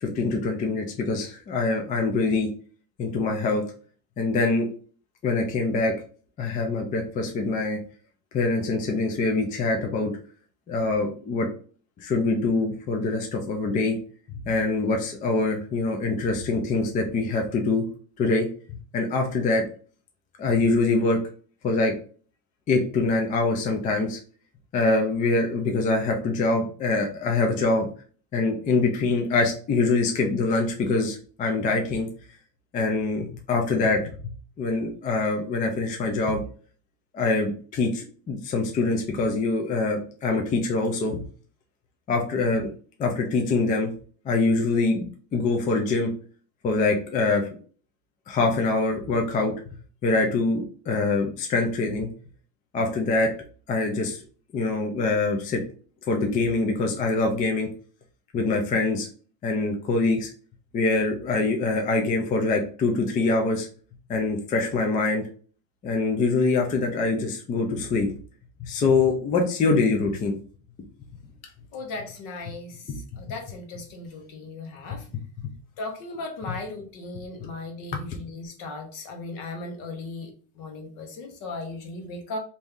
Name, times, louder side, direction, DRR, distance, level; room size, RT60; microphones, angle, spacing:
voice 1, 0.0-2.5 3.0-3.6 4.2-4.7 5.2-5.9 6.4-7.8 8.3-10.1 10.7-11.5 12.0-14.0 14.5-17.9 18.2-18.5 18.9-19.6 20.4-21.2 21.6-21.9 22.7-24.2 24.7-27.9 28.3-32.1 32.7-34.1 34.6-36.4 37.1-41.2 42.1-42.7 43.0-43.9 44.3-45.1 45.3-46.1 46.6-47.5 48.3-49.5 50.0-52.1 52.7-53.3 53.7-54.2 54.5-55.6 56.1-57.7 58.3-59.1 59.4-60.3 60.7-63.7 64.1-65.2 65.8-68.1 68.6-70.3 72.9-73.0, left 3 dB, 20° left, 2 dB, 0.3 m, -24 dB
voice 2, 71.4-75.1 75.8-80.3 80.6-82.4, left 2 dB, 55° left, 3 dB, 1.1 m, -37 dB
3.0 x 2.7 x 3.5 m, 0.41 s
cardioid pair, 160°, 39 cm